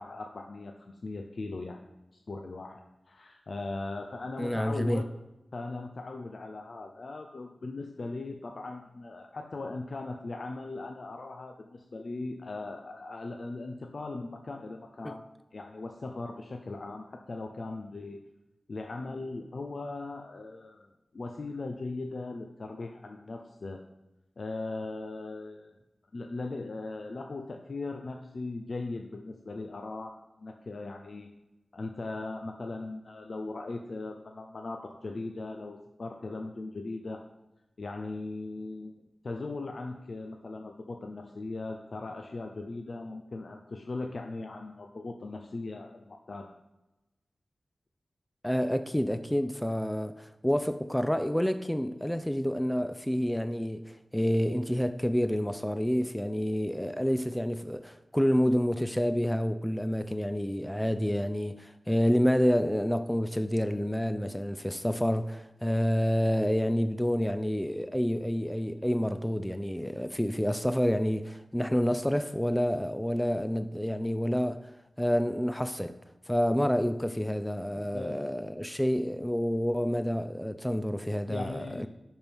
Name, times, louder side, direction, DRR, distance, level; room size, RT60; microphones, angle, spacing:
voice 1, 0.0-1.8 2.1-2.8 3.1-5.1 5.5-18.2 18.7-23.8 24.4-25.7 26.1-31.3 31.7-37.2 37.8-46.5 77.7-78.4 81.3-81.9, left 3 dB, 65° left, 0.5 m, -39 dB
voice 2, 4.4-5.0 15.0-15.1 48.4-74.7 75.0-76.0 76.3-81.9, equal, 5° left, 0.4 m, -28 dB
11.0 x 4.5 x 3.5 m
wide cardioid pair, 70°, 0 cm